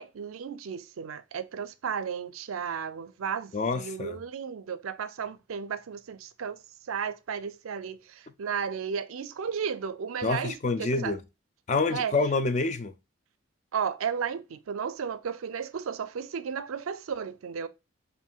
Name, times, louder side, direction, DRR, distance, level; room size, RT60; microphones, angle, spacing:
voice 1, 0.0-6.6 6.9-11.2 11.9-12.1 13.7-17.7, right 7 dB, 85° right, 0.5 m, -34 dB
voice 2, 3.5-4.2 10.2-11.2 11.7-12.9, left 3 dB, 35° left, 0.4 m, -27 dB
5.6 x 2.6 x 2.4 m
head